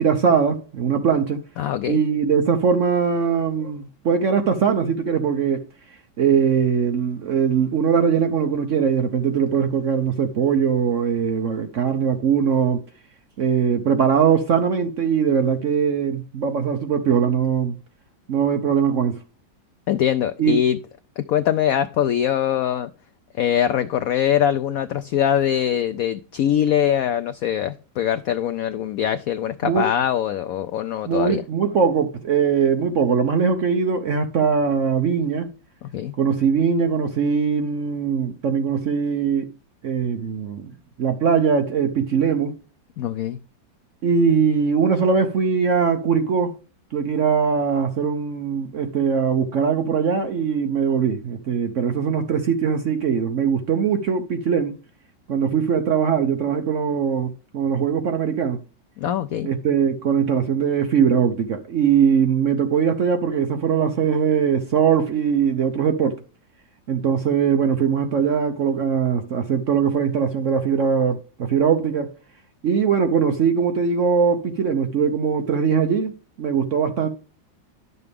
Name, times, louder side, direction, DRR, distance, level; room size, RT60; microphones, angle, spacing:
voice 1, 0.0-1.4 1.9-5.7 6.2-12.8 13.4-17.8 18.3-19.2 20.4-20.6 29.6-29.9 31.1-35.5 36.2-39.5 39.8-40.7 41.0-42.6 44.0-46.5 46.9-54.8 55.3-58.6 59.4-66.2 66.9-72.1 72.6-77.1, right 6 dB, 60° right, 0.8 m, -21 dB
voice 2, 1.6-2.0 19.9-20.8 21.2-22.9 23.4-31.4 35.8-36.1 43.0-43.4 59.0-59.5, left 10 dB, 80° left, 0.7 m, -22 dB
11.0 x 6.8 x 3.4 m
omnidirectional pair, 2.0 m